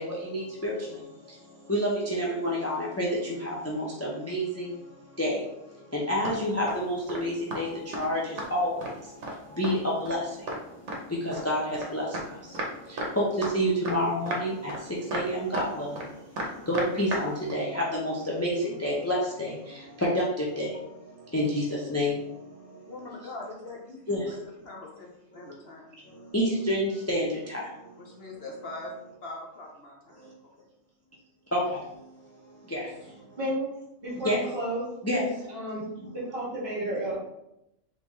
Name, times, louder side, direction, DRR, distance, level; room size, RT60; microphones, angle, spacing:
voice 1, 0.0-22.9 24.1-24.4 25.4-25.5 26.1-28.1 30.1-30.3 31.5-33.4 34.1-34.5 35.0-35.6 36.0-36.2 37.1-37.2, equal, 25° left, -4 dB, 0.3 m, -30 dB
sound 1, 6.2-6.4 6.7-6.8 7.1-7.2 7.5-7.7 7.9-8.1 8.4-8.9 9.2-9.4 9.6-9.8 10.0-10.2 10.5-10.6 10.9-11.9 12.1-12.2 12.5-12.7 13.0-13.5 13.8-14.0 14.3-14.4 14.7-14.8 15.1-15.7 16.0-16.1 16.4-17.2 17.5-17.6, right 1 dB, 65° right, 1.1 m, -33 dB
voice 2, 22.9-24.0 24.3-24.4 24.6-25.1 25.3-25.9 28.0-28.9 29.2-30.2 30.6-30.7, left 2 dB, 55° left, -1 dB, 0.9 m, -41 dB
voice 3, 33.4-33.7 34.0-34.8 35.2-35.8 36.1-37.2, right 1 dB, 45° right, -6 dB, 1.9 m, -32 dB
3.8 x 3.7 x 3.0 m, 0.84 s
omnidirectional pair, 1.4 m